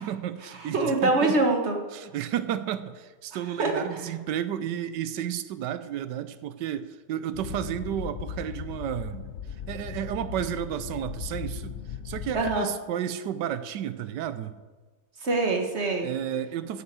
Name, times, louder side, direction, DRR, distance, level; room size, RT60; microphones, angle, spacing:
voice 1, 0.0-1.4 1.9-9.2 9.7-11.8 12.0-14.5 16.0-16.8, right 10 dB, 80° right, 12 dB, 1.3 m, -32 dB
voice 2, 0.7-1.8 3.6-3.8 12.3-12.7 15.2-16.1, right 2 dB, 40° right, 3 dB, 1.5 m, -24 dB
sound 1, 7.3-12.6, left 9 dB, 85° left, 0.6 m, -37 dB
9.7 x 8.4 x 8.1 m, 1.3 s
omnidirectional pair, 1.9 m